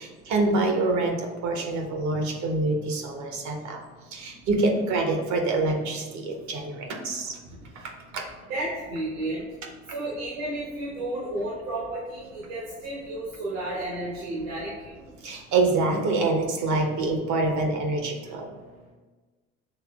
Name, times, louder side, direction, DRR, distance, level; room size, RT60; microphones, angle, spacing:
voice 1, 0.0-3.8 4.1-7.4 8.1-8.2 15.2-18.5, right 2 dB, 60° right, 2 dB, 0.9 m, -26 dB
voice 2, 8.5-9.4 9.9-14.9, right 1 dB, 80° right, -8 dB, 1.4 m, -32 dB
6.8 x 3.1 x 2.4 m, 1.3 s
hypercardioid pair, 65°, 32 cm